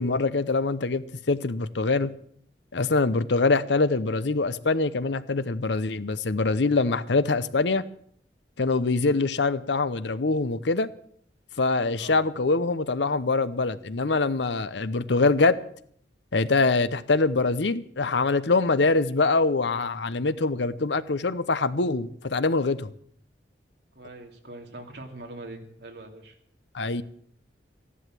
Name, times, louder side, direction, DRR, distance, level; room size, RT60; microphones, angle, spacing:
voice 1, 0.0-2.1 2.7-7.8 8.6-10.9 11.6-15.6 16.3-22.9 26.7-27.0, left 3 dB, 80° left, 0.8 m, -24 dB
voice 2, 23.9-26.4, right 2 dB, 65° right, 2.6 m, -42 dB
14.5 x 11.0 x 7.6 m
head